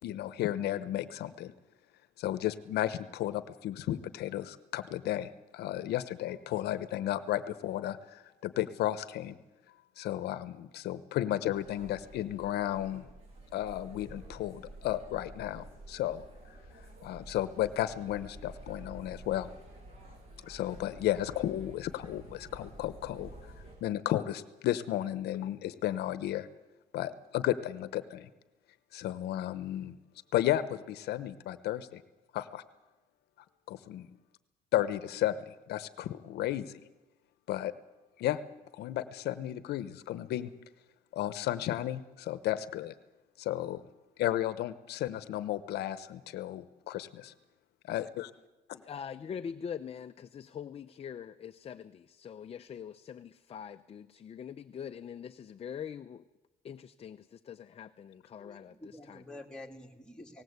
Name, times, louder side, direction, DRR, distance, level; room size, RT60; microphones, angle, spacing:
voice 1, 0.0-1.5 2.2-9.3 10.0-13.1 13.5-16.2 17.0-19.5 20.4-23.4 23.8-26.5 26.9-28.3 28.9-30.0 30.3-32.0 32.3-32.6 33.7-34.1 34.7-36.8 37.5-37.7 38.2-38.4 38.7-40.5 41.1-42.9 43.4-43.8 44.2-47.3 47.8-48.3, left 13 dB, 75° left, 0.9 m, -33 dB
sound 1, 11.5-23.8, right 1 dB, 35° right, 7.7 m, -50 dB
voice 2, 48.7-56.3 56.6-59.2, left 7 dB, 35° left, 0.7 m, -43 dB
voice 3, 58.4-60.4, left 1 dB, 5° left, 2.5 m, -48 dB
18.5 x 17.5 x 8.1 m
cardioid pair, 110°, 17 cm